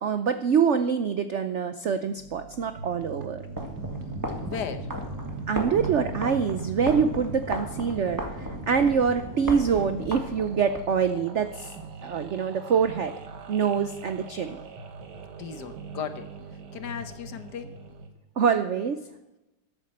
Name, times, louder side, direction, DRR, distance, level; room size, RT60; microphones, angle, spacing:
voice 1, 0.0-3.4 5.5-11.7 12.0-13.2 13.5-14.6 18.4-19.0, right 6 dB, 80° right, 9 dB, 0.6 m, -25 dB
sound 1, 2.2-18.1, right 5 dB, 60° right, 1.7 m, -41 dB
sound 2, 3.5-10.8, equal, 10° right, 1.5 m, -35 dB
voice 2, 4.4-4.9 15.4-16.3 16.7-17.8, left 7 dB, 65° left, 10 dB, 1.4 m, -36 dB
14.0 x 11.5 x 4.3 m, 0.97 s
omnidirectional pair, 2.1 m